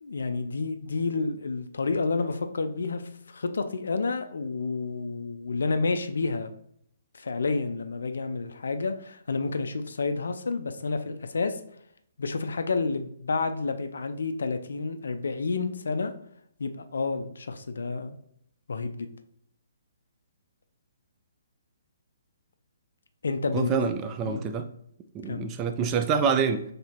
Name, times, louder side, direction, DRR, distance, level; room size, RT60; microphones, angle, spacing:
voice 1, 0.0-3.0 3.3-6.5 7.1-11.6 12.2-16.1 16.6-18.2 18.7-19.1 23.2-23.8 24.2-24.4 25.3-25.5, left 4 dB, 60° left, 0.4 m, -30 dB
voice 2, 23.5-24.7 25.1-26.6, right 6 dB, 20° right, 0.3 m, -26 dB
3.3 x 2.8 x 4.2 m
figure-of-eight pair, 130°, 0 cm